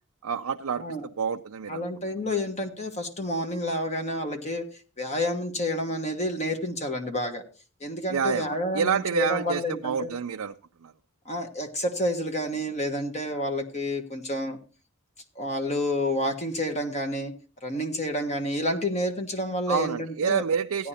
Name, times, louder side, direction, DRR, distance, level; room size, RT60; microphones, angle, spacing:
voice 1, 0.2-0.9 1.2-1.9 8.1-10.6 10.8-10.9 19.7-20.9, right 6 dB, 80° right, 0.5 m, -28 dB
voice 2, 1.7-4.6 5.0-7.4 7.8-10.1 11.2-14.6 15.3-17.3 17.6-20.4 20.8-20.9, left 1 dB, 30° left, 1.3 m, -29 dB
16.0 x 10.0 x 2.8 m
head